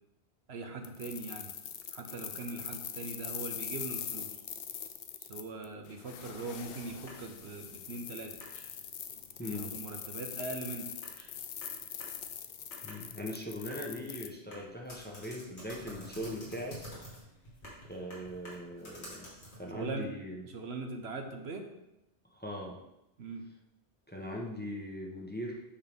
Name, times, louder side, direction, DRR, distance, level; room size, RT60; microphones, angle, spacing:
voice 1, 0.5-1.5 1.9-4.4 5.2-8.4 9.4-10.9 19.7-20.1 20.4-21.7 23.2-23.4, right 3 dB, 75° right, 4 dB, 1.2 m, -41 dB
sound 1, 0.8-14.3, left 9 dB, 65° left, 0.8 m, -42 dB
sound 2, 7.0-19.7, equal, 85° left, 2.4 m, -51 dB
voice 2, 9.4-9.7 12.8-16.8 17.9-19.3 19.6-20.4 22.3-22.8 24.1-25.6, left 1 dB, 10° left, -1 dB, 0.9 m, -40 dB
8.6 x 5.6 x 3.6 m, 0.87 s
omnidirectional pair, 1.1 m